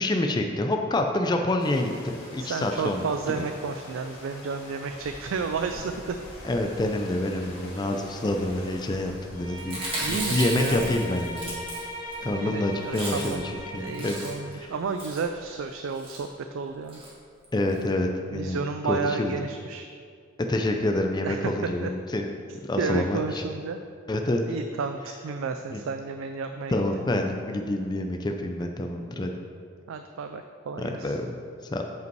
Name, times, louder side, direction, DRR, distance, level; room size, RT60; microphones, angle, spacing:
voice 1, 0.0-3.4 6.4-9.8 10.1-11.5 12.2-14.2 14.5-14.7 17.5-18.6 18.9-19.3 20.5-22.3 22.6-23.4 24.1-24.4 25.7-25.8 26.7-29.3 30.8-31.4 31.7-31.8, left 1 dB, 20° left, 3 dB, 0.4 m, -27 dB
sound 1, 1.6-15.7, left 1 dB, 85° left, 1.7 m, -46 dB
voice 2, 2.4-6.2 10.0-10.9 12.3-13.4 13.8-17.0 18.3-19.9 21.2-21.9 22.8-23.8 24.5-26.8 29.9-31.2, right 4 dB, 70° right, 7 dB, 0.3 m, -32 dB
Bowed string instrument, 9.3-14.5, equal, 40° left, 1.8 m, -38 dB
Chewing mastication, 9.6-12.2 12.5-12.6 12.8-13.5 13.8-14.5 15.0-15.3 15.9-16.2 16.9-17.1 17.4-17.5 17.7-17.8, right 2 dB, 25° right, 1.7 m, -35 dB
8.1 x 5.3 x 4.6 m, 2.2 s
head